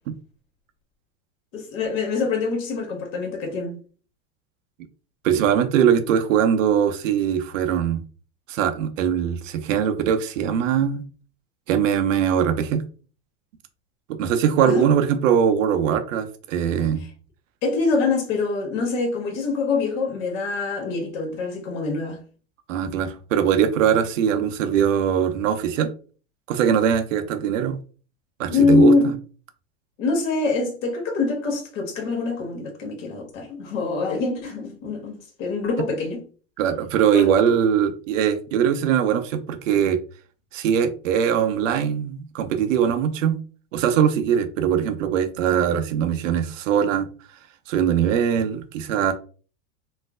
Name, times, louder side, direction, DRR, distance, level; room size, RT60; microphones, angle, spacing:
voice 1, 1.5-3.8 14.6-14.9 17.6-22.2 28.5-29.1 30.0-36.2 37.1-37.3, left 4 dB, 60° left, 1.3 m, -24 dB
voice 2, 5.2-8.0 8.5-11.0 11.7-12.8 14.1-17.0 22.7-25.9 26.5-27.8 28.4-28.9 36.6-40.0 40.5-43.4 43.7-47.1 47.7-49.1, right 8 dB, 75° right, 0.7 m, -21 dB
3.1 x 2.1 x 3.5 m
hypercardioid pair, 105°, 39 cm